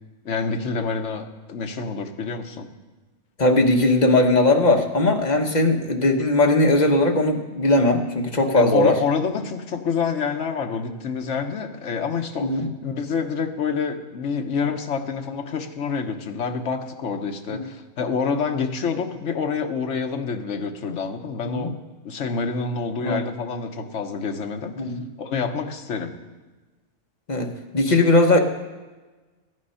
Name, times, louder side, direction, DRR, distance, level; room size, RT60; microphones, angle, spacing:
voice 1, 0.2-2.7 8.5-21.7 22.0-24.8 25.2-26.1, left 5 dB, 60° left, 5 dB, 1.2 m, -27 dB
voice 2, 3.4-9.0 12.4-12.7 17.5-17.7 21.4-21.7 23.0-23.2 24.8-25.0 27.3-28.4, left 2 dB, 35° left, 3 dB, 1.1 m, -19 dB
14.0 x 9.7 x 5.6 m, 1.2 s
omnidirectional pair, 1.4 m